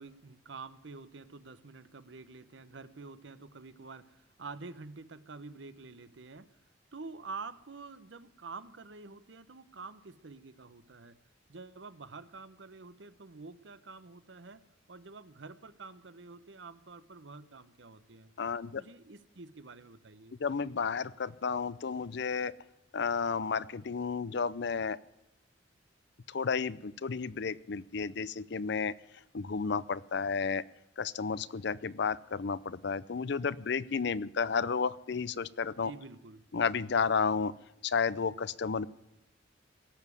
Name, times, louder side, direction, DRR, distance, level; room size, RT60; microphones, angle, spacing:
voice 1, 0.0-6.5 6.9-11.2 11.5-14.6 14.9-18.3 18.6-20.4 35.8-36.4, right 4 dB, 75° right, 14 dB, 0.9 m, -48 dB
voice 2, 18.4-18.8 20.4-22.5 22.9-25.0 26.3-28.9 29.3-30.6 31.0-35.9 36.5-37.5 37.8-38.9, left 5 dB, 65° left, 19 dB, 0.5 m, -32 dB
17.5 x 7.1 x 9.7 m, 0.89 s
head